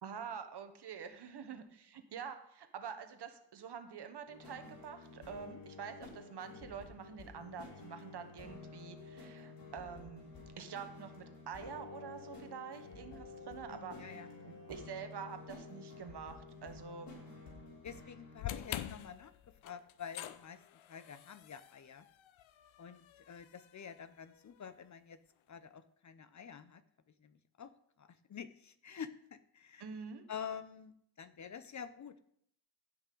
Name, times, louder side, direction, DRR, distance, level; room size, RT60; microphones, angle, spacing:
voice 1, 0.0-10.3 10.6-14.2 14.4-17.1 29.8-30.2, right 7 dB, 60° right, 8 dB, 1.2 m, -47 dB
sound 1, 4.3-18.6, left 3 dB, 60° left, 3.8 m, -51 dB
voice 2, 13.7-14.3 17.8-20.6 20.9-22.1 22.8-25.2 25.5-26.8 27.2-27.7 28.0-29.8 30.3-32.2, left 7 dB, 40° left, 13 dB, 0.6 m, -48 dB
sound 2, 18.4-24.7, left 12 dB, 85° left, 0.7 m, -47 dB
15.5 x 5.7 x 3.8 m, 0.69 s
cardioid pair, 110°, 46 cm